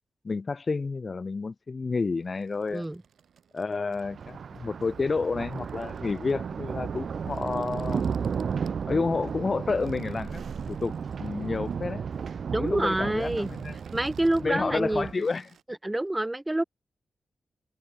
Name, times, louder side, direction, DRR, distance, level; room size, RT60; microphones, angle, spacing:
voice 1, 0.2-2.8 3.5-8.0 8.9-12.0 12.5-13.8 14.4-15.5, left 4 dB, 35° left, 0.9 m, -30 dB
sound 1, 2.2-15.6, right 7 dB, 75° right, 7.7 m, -62 dB
voice 2, 2.7-3.0 12.5-13.5 13.9-15.3 15.8-16.6, right 1 dB, 10° right, 0.7 m, -27 dB
Thunder, 4.0-15.1, right 6 dB, 55° right, 0.8 m, -34 dB
wide cardioid pair, 140°, 0 cm